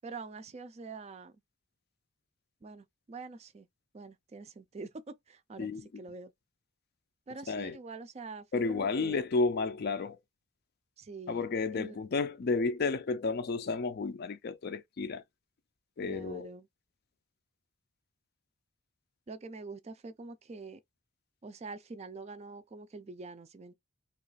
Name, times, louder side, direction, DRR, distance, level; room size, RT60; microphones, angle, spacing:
voice 1, 0.0-1.3 2.6-3.7 3.9-4.9 5.3-5.7 6.0-6.3 7.3-9.2 11.0-11.5 11.7-12.0 16.0-16.6 19.3-20.8 21.4-23.7, right 3 dB, 30° right, 0.3 m, -45 dB
voice 2, 5.6-6.0 7.5-7.8 8.5-10.2 11.3-15.2 16.0-16.6, left 4 dB, 50° left, 0.4 m, -32 dB
2.9 x 2.4 x 3.9 m
head